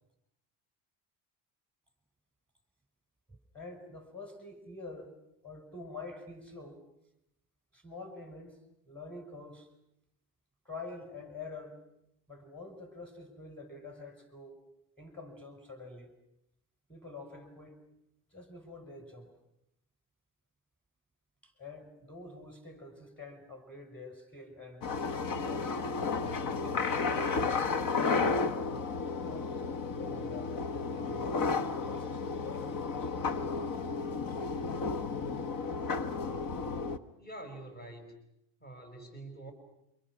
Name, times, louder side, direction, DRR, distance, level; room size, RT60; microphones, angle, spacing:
voice 1, 3.3-5.1 5.4-6.8 7.7-8.6 8.9-9.7 10.7-11.8 12.3-14.6 15.0-16.1 16.9-17.8 18.3-19.3 21.4-25.9 26.6-28.8 29.3-33.6, left 3 dB, 5° left, 6 dB, 5.4 m, -47 dB
sound 1, 24.8-37.0, left 4 dB, 45° left, 1.4 m, -33 dB
voice 2, 37.2-38.1 38.6-39.5, right 2 dB, 20° left, 5 dB, 5.2 m, -46 dB
27.5 x 25.5 x 6.2 m, 0.82 s
cardioid pair, 120°, 45 cm